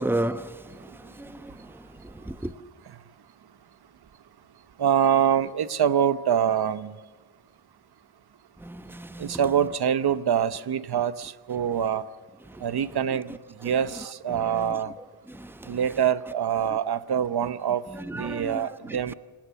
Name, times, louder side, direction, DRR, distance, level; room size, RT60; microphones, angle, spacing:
voice 1, 0.0-2.5 8.6-9.5 12.5-12.7 13.6-13.7 14.3-14.8 15.3-15.8 17.9-19.1, right 1 dB, 5° right, 1.0 m, -34 dB
voice 2, 4.8-6.9 9.2-12.1 12.6-13.4 13.6-14.9 15.7-17.9 18.2-19.1, right 9 dB, 80° right, 1.0 m, -25 dB
28.0 x 19.0 x 6.9 m
cardioid pair, 65°, 38 cm